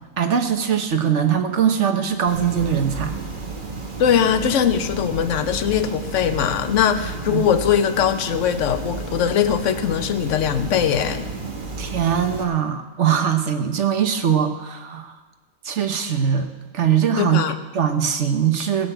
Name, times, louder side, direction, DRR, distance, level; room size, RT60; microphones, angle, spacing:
voice 1, 0.2-3.1 7.3-7.4 11.8-15.1 15.6-16.5 16.7-17.4 17.7-18.9, right 8 dB, 55° right, 7 dB, 1.3 m, -21 dB
sound 1, 2.3-12.4, right 3 dB, 35° right, 1.5 m, -32 dB
voice 2, 4.0-11.3 17.2-17.6, left 9 dB, 60° left, 10 dB, 1.1 m, -21 dB
15.0 x 6.7 x 9.0 m, 1.3 s
omnidirectional pair, 1.5 m